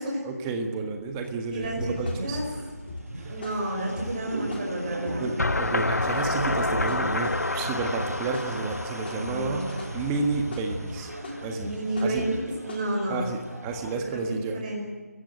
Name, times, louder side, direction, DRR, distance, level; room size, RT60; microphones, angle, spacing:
voice 1, 0.2-2.4 3.2-3.3 5.2-7.3 7.5-9.7 9.9-11.1 11.4-11.7 12.0-12.2 13.1-14.6, right 4 dB, 15° right, 4 dB, 1.7 m, -31 dB
sound 1, 1.0-13.9, right 1 dB, 70° right, 6.3 m, -37 dB
sound 2, 1.2-1.4 1.8-5.4 5.8-6.2 6.5-12.9, left 3 dB, 40° left, 3.5 m, -40 dB
voice 2, 1.5-1.9 2.2-2.4 3.3-5.3 9.1-9.9 11.6-13.3 13.9-14.2 14.5-14.8, right 1 dB, 30° right, -1 dB, 5.3 m, -31 dB
sound 3, 5.4-10.3, left 2 dB, 85° left, 0.6 m, -29 dB
29.5 x 15.5 x 8.0 m, 1.4 s
figure-of-eight pair, 160°, 9 cm